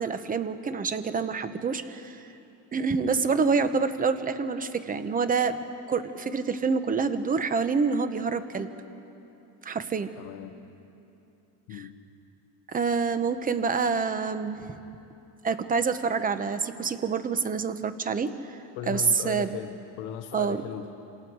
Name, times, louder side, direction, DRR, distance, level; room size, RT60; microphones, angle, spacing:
voice 1, 0.0-2.3 2.7-5.6 5.9-8.7 9.6-10.1 11.7-11.8 12.7-14.8 15.4-19.5 20.3-20.6, right 5 dB, 15° right, 11 dB, 0.8 m, -27 dB
voice 2, 10.2-10.6 11.7-11.9 18.7-20.9, left 11 dB, 80° left, 5 dB, 1.2 m, -37 dB
27.5 x 27.0 x 4.7 m, 2.9 s
cardioid pair, 145°, 50 cm